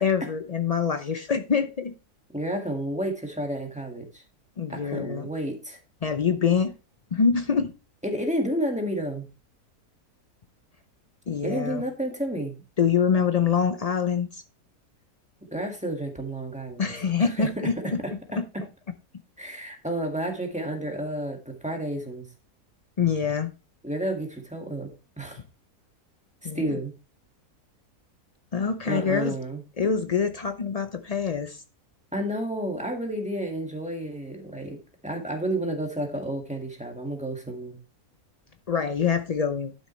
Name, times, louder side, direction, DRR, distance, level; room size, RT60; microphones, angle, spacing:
voice 1, 0.0-1.9 4.6-5.3 6.0-6.7 7.1-7.7 11.3-11.8 12.8-14.4 16.8-18.0 18.4-18.5 23.0-23.5 26.4-26.8 28.5-29.3 29.8-31.6 38.7-39.7, left 6 dB, 80° left, 0.3 m, -25 dB
voice 2, 2.3-4.2 4.7-5.8 8.0-9.3 11.4-12.6 15.5-16.9 17.2-18.6 19.4-22.2 23.8-25.4 26.4-26.9 28.8-29.6 32.1-37.8, right 1 dB, 5° right, 1.8 m, -31 dB
12.0 x 6.4 x 3.1 m
omnidirectional pair, 1.7 m